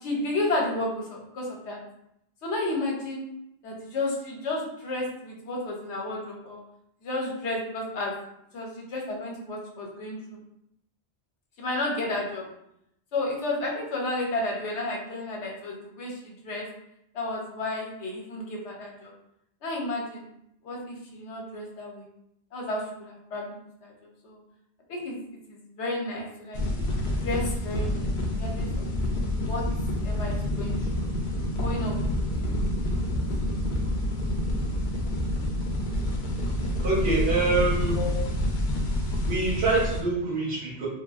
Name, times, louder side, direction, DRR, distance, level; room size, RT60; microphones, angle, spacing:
voice 1, 0.0-1.8 2.4-3.2 3.6-6.6 7.0-8.1 8.5-10.4 11.6-12.4 13.1-16.7 17.1-19.1 19.6-20.2 20.6-22.1 22.5-23.9 24.2-24.4 24.9-25.2 25.5-26.6 27.2-28.8 29.4-29.6 30.0-30.7 31.6-32.0 32.3-32.7 33.1-33.2 38.0-38.2, left 2 dB, 75° left, -1 dB, 1.0 m, -32 dB
sound 1, 26.5-40.0, left 1 dB, 60° left, 0.6 m, -28 dB
voice 2, 36.8-38.0 39.2-40.9, right 3 dB, 60° right, -6 dB, 1.1 m, -25 dB
3.2 x 2.0 x 2.3 m, 0.79 s
omnidirectional pair, 1.2 m